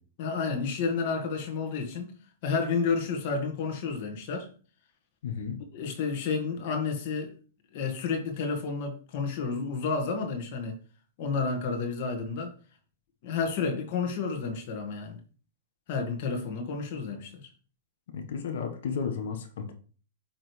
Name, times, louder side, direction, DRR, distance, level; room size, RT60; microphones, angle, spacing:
voice 1, 0.2-2.1 2.4-4.5 5.7-7.3 7.7-10.8 11.2-12.5 13.2-15.2 15.9-17.5, left 5 dB, 55° left, 1.9 m, -30 dB
voice 2, 5.2-5.6 18.1-19.7, left 6 dB, 70° left, 1.4 m, -33 dB
9.3 x 3.8 x 3.4 m
hypercardioid pair, 125°, 0 cm